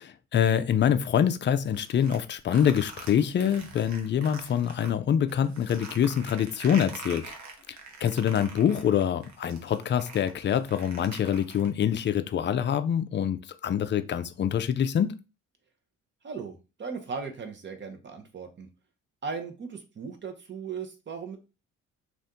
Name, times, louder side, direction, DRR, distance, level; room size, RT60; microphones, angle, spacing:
voice 1, 0.0-7.2 8.0-15.1, left 9 dB, 40° left, 0.4 m, -25 dB
sound 1, 1.7-4.9 5.3-11.9, right 4 dB, 65° right, 0.9 m, -44 dB
voice 2, 16.2-18.7 19.2-21.4, right 5 dB, 40° right, 0.8 m, -37 dB
2.7 x 2.5 x 3.5 m
cardioid pair, 90°, 30 cm